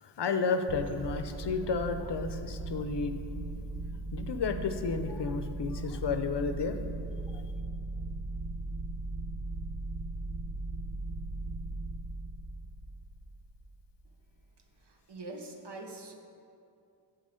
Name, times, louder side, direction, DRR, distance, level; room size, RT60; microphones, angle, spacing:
voice 1, 0.0-3.2 3.5-3.7 4.1-6.8 7.3-7.5, left 5 dB, 65° left, 8 dB, 0.6 m, -32 dB
sound 1, 0.7-14.0, right 2 dB, 90° right, 0.7 m, -38 dB
voice 2, 14.8-16.1, right 2 dB, 65° right, 3 dB, 1.0 m, -44 dB
7.3 x 5.4 x 5.1 m, 2.5 s
cardioid pair, 40°, 45 cm